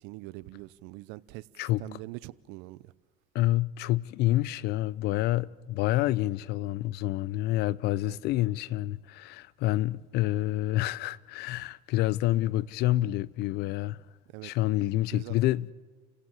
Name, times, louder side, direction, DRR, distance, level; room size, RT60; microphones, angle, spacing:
voice 1, 0.0-1.5 1.8-2.9 8.0-8.2 14.3-14.5 15.1-15.4, right 20 dB, 70° right, 0.8 m, -43 dB
voice 2, 3.3-14.0 14.4-15.7, left 16 dB, 60° left, 0.7 m, -28 dB
29.5 x 16.5 x 7.3 m
supercardioid pair, 90°, 19 cm